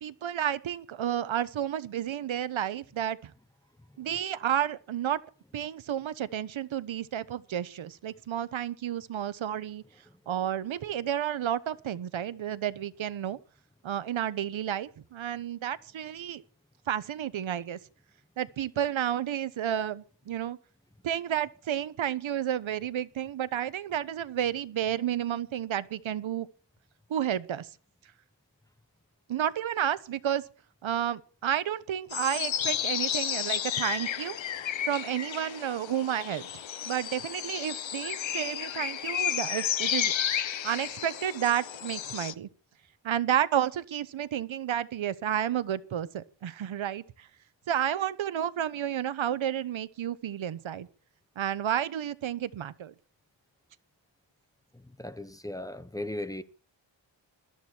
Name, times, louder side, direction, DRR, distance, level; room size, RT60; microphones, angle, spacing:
voice 1, 0.0-3.3 4.0-5.2 5.5-9.8 10.3-13.4 13.8-16.4 16.9-17.8 18.4-20.6 21.0-26.5 27.1-27.7 29.3-30.4 30.8-34.4 34.8-36.5 36.8-40.1 40.6-42.5 43.0-47.3 47.7-50.9 51.4-52.9, right 10 dB, 85° right, 1.2 m, -31 dB
sound 1, 32.1-42.3, left 9 dB, 75° left, 1.1 m, -32 dB
voice 2, 54.7-56.4, left 1 dB, 10° left, 1.0 m, -37 dB
21.0 x 13.5 x 4.6 m
wide cardioid pair, 150°, 46 cm